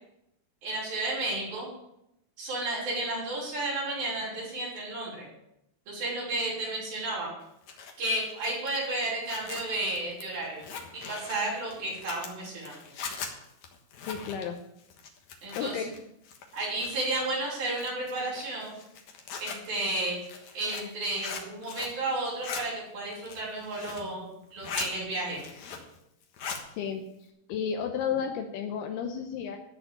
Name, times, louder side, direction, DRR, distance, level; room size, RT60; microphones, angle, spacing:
voice 1, 0.6-1.7 2.4-5.3 5.9-7.3 8.0-10.6 10.9-12.8 15.4-15.9 16.5-18.7 19.4-20.2 20.5-25.4, right 2 dB, 60° right, -6 dB, 7.4 m, -32 dB
Zipper (clothing), 7.4-16.0 16.2-17.2 17.7-22.0 22.3-22.6 23.1-24.1 24.4-24.9 25.3-26.0 26.2-26.6, left 5 dB, 60° left, 2.2 m, -40 dB
voice 2, 14.0-14.6 15.6-15.9 26.8-27.0 27.5-29.6, left 7 dB, 80° left, 4 dB, 2.8 m, -32 dB
14.5 x 4.9 x 8.9 m, 0.82 s
omnidirectional pair, 4.7 m